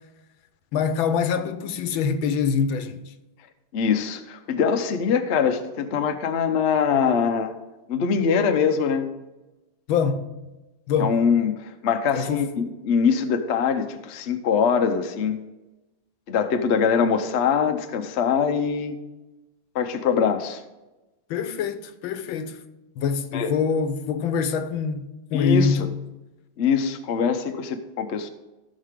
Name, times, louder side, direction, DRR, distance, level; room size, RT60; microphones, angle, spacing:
voice 1, 0.7-3.0 9.9-10.3 10.9-11.2 12.1-12.5 21.3-22.6 23.0-25.9, left 6 dB, 85° left, 1.5 m, -24 dB
voice 2, 3.7-7.5 7.9-9.1 11.0-15.4 16.3-19.0 19.7-20.6 23.3-23.5 25.3-25.9 26.6-28.3, left 6 dB, 55° left, 0.7 m, -23 dB
14.5 x 6.6 x 3.7 m
omnidirectional pair, 2.1 m